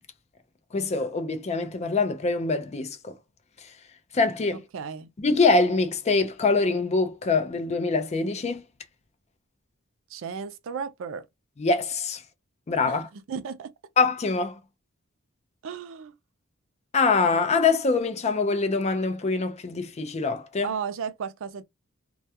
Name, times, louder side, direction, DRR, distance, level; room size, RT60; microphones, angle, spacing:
voice 1, 0.7-3.1 4.1-4.6 5.2-8.6 11.6-12.2 12.7-13.1 14.0-14.6 16.9-20.7, left 4 dB, 30° left, 0.4 m, -24 dB
voice 2, 4.7-5.1 10.1-11.3 12.9-13.7 15.6-16.1 20.6-21.6, right 6 dB, 65° right, 0.4 m, -34 dB
2.2 x 2.2 x 2.7 m
head